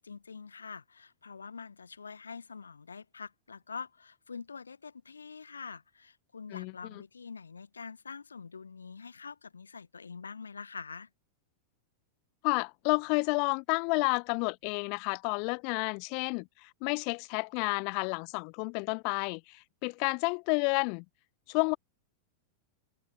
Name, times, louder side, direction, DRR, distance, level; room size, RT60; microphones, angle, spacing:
voice 1, 0.0-11.1, left 5 dB, 75° left, 1.6 m, -45 dB
voice 2, 6.5-7.0 12.4-21.0 21.5-21.8, left 39 dB, 45° left, 1.0 m, -31 dB
figure-of-eight pair, 90°, 0 cm